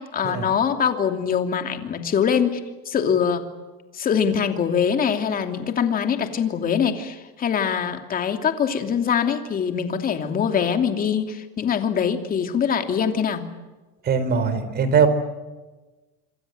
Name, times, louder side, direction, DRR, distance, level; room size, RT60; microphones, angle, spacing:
voice 1, 0.0-2.6 2.9-3.4 3.9-13.4, left 7 dB, 30° left, 6 dB, 2.9 m, -23 dB
voice 2, 14.0-15.1, right 6 dB, 30° right, 12 dB, 3.9 m, -20 dB
27.0 x 26.5 x 7.9 m, 1.2 s
supercardioid pair, 150°, 31 cm